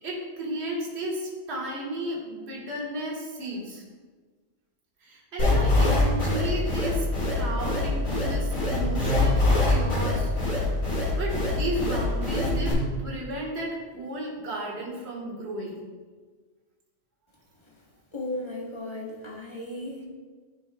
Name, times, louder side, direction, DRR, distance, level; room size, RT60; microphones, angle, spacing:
voice 1, 0.0-3.8 5.0-10.8 11.2-15.8, right 1 dB, 55° right, -3 dB, 1.6 m, -34 dB
sound 1, 5.4-12.7, left 2 dB, 80° left, 2.4 m, -24 dB
voice 2, 18.1-20.1, left 1 dB, 25° left, -1 dB, 0.9 m, -35 dB
10.5 x 5.4 x 2.2 m, 1.4 s
omnidirectional pair, 1.4 m